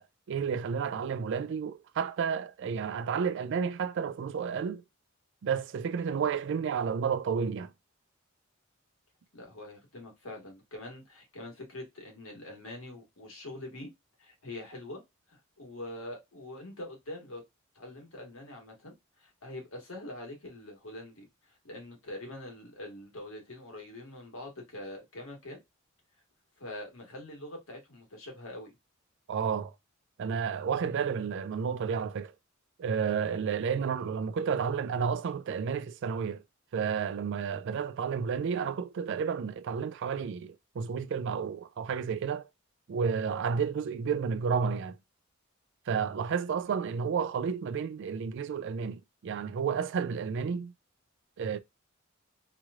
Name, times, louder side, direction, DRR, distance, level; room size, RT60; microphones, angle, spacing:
voice 1, 0.0-4.8 5.4-7.7 29.3-29.7 30.2-32.3 32.8-36.4 36.7-42.5 42.9-45.0 45.9-50.7 51.4-51.6, right 6 dB, 60° right, 0.4 m, -31 dB
voice 2, 9.3-13.9 14.2-15.0 15.3-17.4 17.7-25.6 26.6-28.7, left 1 dB, 85° left, 1.5 m, -44 dB
3.0 x 3.0 x 2.4 m
head